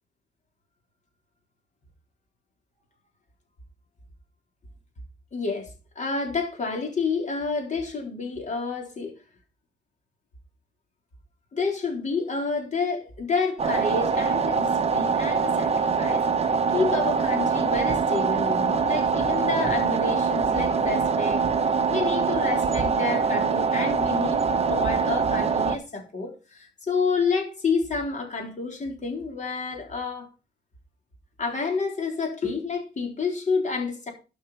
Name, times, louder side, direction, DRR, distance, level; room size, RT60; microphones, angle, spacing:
voice 1, 5.3-9.1 11.5-21.4 21.9-30.3 31.4-34.1, left 4 dB, 35° left, 3.9 m, -29 dB
sound 1, 13.6-25.8, right 5 dB, 30° right, 0.8 m, -24 dB
12.0 x 5.6 x 5.6 m
wide cardioid pair, 145°, 20 cm